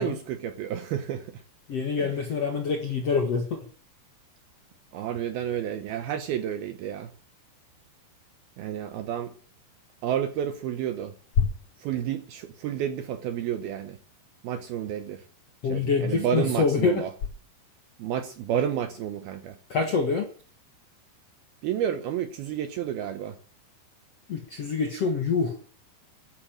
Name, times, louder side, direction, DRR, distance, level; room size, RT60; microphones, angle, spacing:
voice 1, 0.0-1.4 2.0-2.1 4.9-7.1 8.6-9.3 10.0-11.1 11.8-14.0 14.4-15.2 15.7-17.1 18.0-19.6 21.6-23.4, right 9 dB, 75° right, 2.4 m, -30 dB
voice 2, 1.7-3.7 15.6-17.0 19.7-20.3 24.3-25.6, left 5 dB, 55° left, 1.7 m, -26 dB
14.0 x 10.5 x 7.6 m
omnidirectional pair, 5.4 m